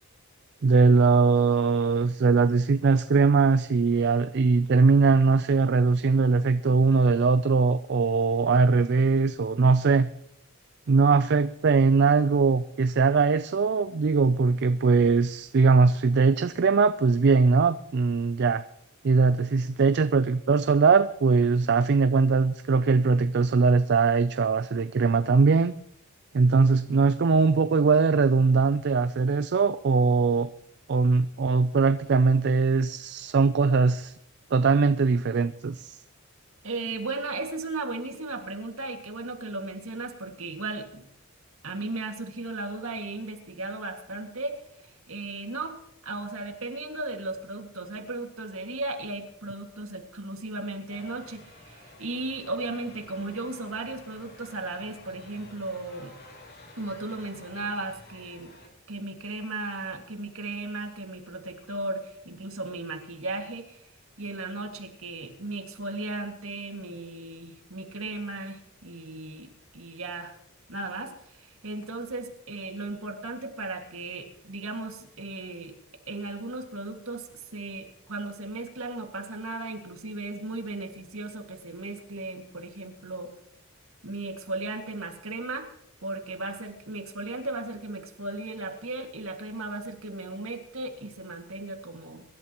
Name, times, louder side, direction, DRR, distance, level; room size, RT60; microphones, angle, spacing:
voice 1, 0.6-10.1 10.9-18.6 19.0-25.7 26.3-30.5 30.9-34.1 34.5-36.0, right 4 dB, 50° right, 12 dB, 0.4 m, -21 dB
voice 2, 36.6-41.0 41.6-44.6 45.1-56.1 56.8-58.6 58.9-63.8 64.2-69.5 69.7-70.3 70.7-75.7 76.1-77.3 77.5-83.3 84.0-85.7 86.0-92.2, right 2 dB, 65° right, 4 dB, 2.1 m, -36 dB
sound 1, 50.9-58.7, left 1 dB, 45° left, 2.7 m, -50 dB
24.0 x 12.0 x 3.0 m, 0.76 s
head